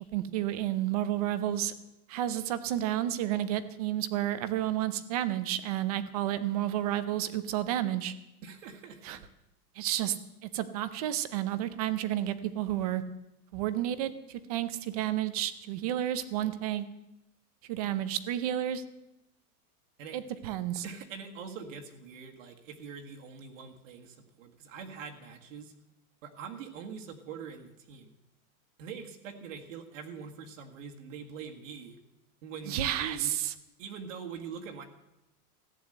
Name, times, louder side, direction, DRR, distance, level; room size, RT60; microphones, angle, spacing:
voice 1, 0.1-1.7 2.1-8.1 9.0-9.2 9.8-10.2 10.4-13.0 13.5-16.8 17.7-18.8 20.1-20.8 32.7-33.5, right 12 dB, 25° right, 13 dB, 0.5 m, -31 dB
voice 2, 8.4-9.2 20.0-20.2 20.8-25.7 26.2-28.1 28.8-32.0 32.4-33.4 33.8-34.9, right 6 dB, 55° right, 3 dB, 1.8 m, -43 dB
15.0 x 9.3 x 7.9 m, 0.90 s
supercardioid pair, 170°, 45 cm